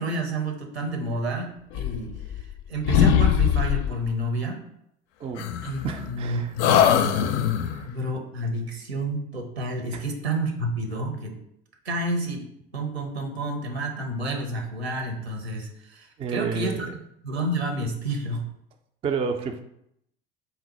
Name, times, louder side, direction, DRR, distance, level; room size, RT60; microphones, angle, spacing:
voice 1, 0.0-4.6 5.6-6.8 7.3-7.4 7.8-11.4 11.8-12.5 12.7-17.0 17.2-18.5, right 1 dB, 80° right, 2 dB, 0.8 m, -30 dB
sound 1, 1.7-2.6 2.9-4.0 5.4-6.2 6.6-7.8, left 9 dB, 50° left, 0.4 m, -22 dB
voice 2, 5.8-6.5 6.9-7.0 7.6-7.9 9.9-10.0 16.2-16.9 19.0-19.6, right 6 dB, 20° right, 5 dB, 0.3 m, -30 dB
4.1 x 2.1 x 4.1 m, 0.75 s
figure-of-eight pair, 65°, 31 cm